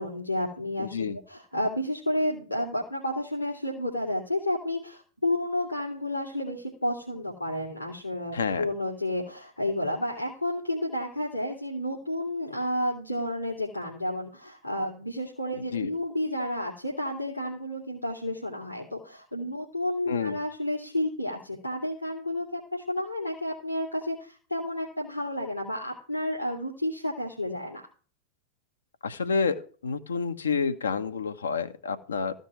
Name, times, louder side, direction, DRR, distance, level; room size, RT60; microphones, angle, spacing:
voice 1, 0.0-27.8, left 1 dB, 90° left, 2.4 m, -31 dB
voice 2, 0.8-1.2 8.3-8.7 15.7-15.9 20.1-20.4 29.0-32.3, left 5 dB, 70° left, 1.2 m, -29 dB
14.5 x 5.2 x 7.9 m
figure-of-eight pair, 90°, 0 cm